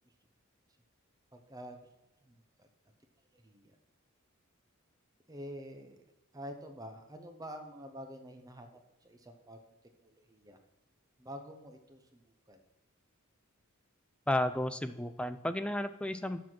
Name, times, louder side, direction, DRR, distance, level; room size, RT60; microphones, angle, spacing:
voice 1, 1.3-1.9 2.2-2.7 3.3-3.8 5.3-6.0 6.3-9.6 10.0-10.6 11.2-12.6, equal, 15° right, 6 dB, 0.8 m, -48 dB
voice 2, 14.3-16.4, left 1 dB, 5° left, 10 dB, 0.4 m, -33 dB
7.2 x 5.9 x 6.1 m, 0.96 s
head